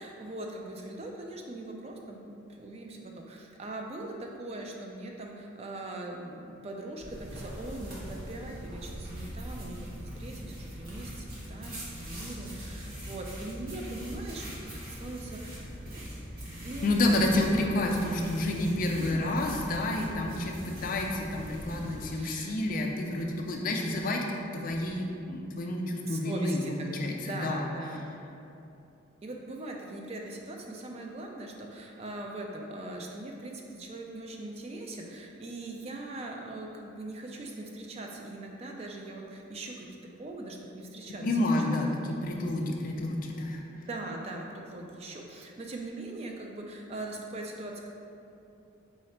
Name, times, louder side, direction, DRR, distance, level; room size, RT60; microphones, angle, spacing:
voice 1, 0.0-9.8 10.2-16.2 16.6-17.4 18.9-19.4 22.1-22.5 26.0-26.7 27.1-28.0 29.2-39.9 40.2-41.3 43.7-47.9, right 2 dB, 30° right, 1 dB, 0.3 m, -41 dB
sound 1, 7.0-22.1, equal, 45° right, 0.8 m, -41 dB
voice 2, 16.8-24.2 24.5-27.6 41.2-43.6, left 1 dB, 40° left, 1 dB, 0.4 m, -29 dB
4.2 x 2.4 x 4.2 m, 2.7 s
head